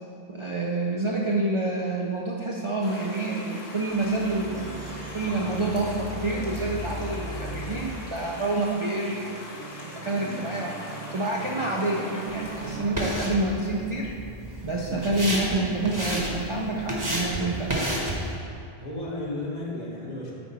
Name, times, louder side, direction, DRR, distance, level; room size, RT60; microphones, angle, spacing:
voice 1, 0.3-14.1 14.6-17.8, right 2 dB, 40° right, -3 dB, 0.5 m, -28 dB
sound 1, 2.8-12.8, left 1 dB, 80° left, 1.6 m, -42 dB
sound 2, 3.9-13.9, equal, 60° right, 0.9 m, -39 dB
sound 3, 12.3-18.3, right 1 dB, 20° right, 1.0 m, -31 dB
voice 2, 14.8-15.1 18.3-20.4, left 1 dB, 40° left, -4 dB, 1.2 m, -35 dB
8.8 x 5.0 x 4.1 m, 2.5 s
omnidirectional pair, 1.1 m